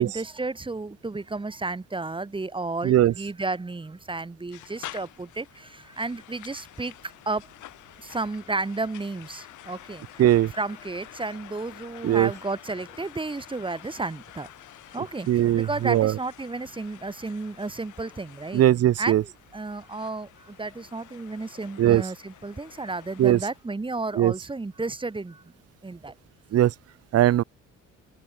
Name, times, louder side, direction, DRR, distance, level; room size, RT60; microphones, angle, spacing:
voice 1, 0.0-5.4 6.0-6.9 7.3-7.4 8.1-10.0 10.5-14.5 14.9-15.3 15.5-18.6 19.0-19.3 19.5-20.3 20.6-25.3 25.8-26.1, right 3 dB, 15° right, 1.3 m, -32 dB
sound 1, 4.5-23.6, left 14 dB, 80° left, 1.6 m, -48 dB
voice 2, 10.2-10.5 12.0-12.3 15.3-16.1 18.5-19.2 21.8-22.0 23.2-23.4 24.2-24.3 26.5-26.7 27.1-27.4, right 12 dB, 55° right, 0.6 m, -19 dB
cardioid pair, 90°, 30 cm